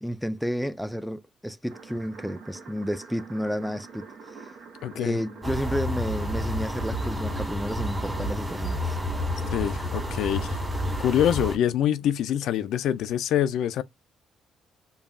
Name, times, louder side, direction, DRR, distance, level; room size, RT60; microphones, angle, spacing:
voice 1, 0.0-4.6 5.0-9.0, equal, ahead, 0.4 m, -31 dB
sound 1, 1.7-11.2, right 5 dB, 65° right, 0.8 m, -45 dB
voice 2, 4.8-5.2 9.5-10.6 11.0-13.8, left 10 dB, 80° left, 0.3 m, -25 dB
sound 2, 5.4-11.6, equal, 15° right, 1.6 m, -30 dB
5.3 x 2.3 x 2.4 m
cardioid pair, 90°, 0 cm